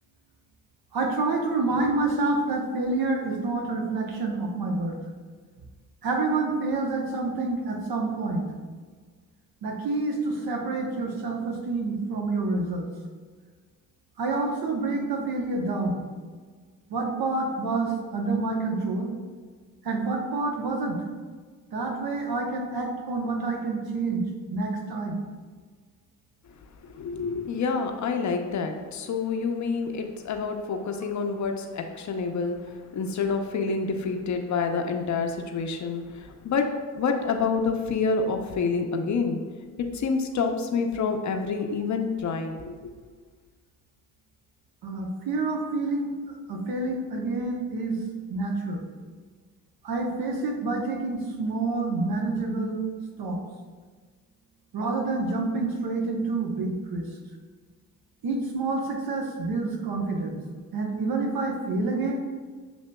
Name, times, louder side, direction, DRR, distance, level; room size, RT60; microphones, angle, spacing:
voice 1, 0.9-5.0 6.0-8.5 9.6-12.9 14.2-16.1 16.9-19.1 19.8-21.0 21.7-24.2 24.5-25.2 44.8-48.0 48.3-48.8 49.8-52.8 53.2-53.4 54.7-57.1 58.2-60.5 60.7-62.2, right 3 dB, 60° right, 2 dB, 0.9 m, -28 dB
voice 2, 26.8-36.7 36.9-39.4 39.9-42.8, left 5 dB, 45° left, 5 dB, 0.6 m, -28 dB
6.9 x 2.7 x 2.2 m, 1.5 s
supercardioid pair, 55°, 40 cm